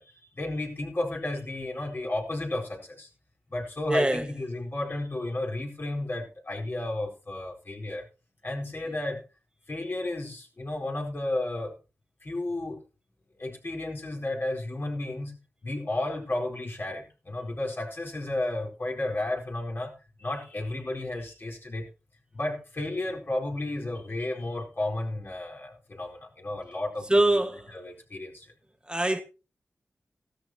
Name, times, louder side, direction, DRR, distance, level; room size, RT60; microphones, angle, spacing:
voice 1, 0.0-3.1 3.5-8.1 8.4-9.2 9.7-11.8 12.2-12.8 13.4-15.4 15.6-19.9 20.2-21.9 22.3-27.1 27.3-27.4 27.7-28.5, left 2 dB, 45° left, 4.2 m, -33 dB
voice 2, 3.9-4.3 8.8-8.9 27.1-27.7 28.9-29.2, right 1 dB, 20° right, 1.5 m, -24 dB
15.5 x 13.0 x 2.8 m
wide cardioid pair, 65°, 5 cm